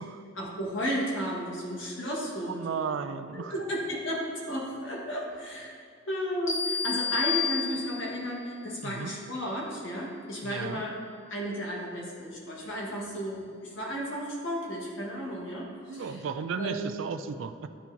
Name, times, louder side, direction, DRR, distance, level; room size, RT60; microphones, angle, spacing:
voice 1, 0.3-2.6 3.3-5.7 6.1-10.9 11.3-16.2 16.5-16.9, equal, 80° left, -3 dB, 1.6 m, -33 dB
voice 2, 2.4-3.5 8.8-9.1 10.4-10.8 15.9-17.7, right 6 dB, 75° right, 10 dB, 0.4 m, -35 dB
sound 1, 6.5-8.3, left 6 dB, 40° left, 0.9 m, -30 dB
11.5 x 4.4 x 2.8 m, 2.3 s
head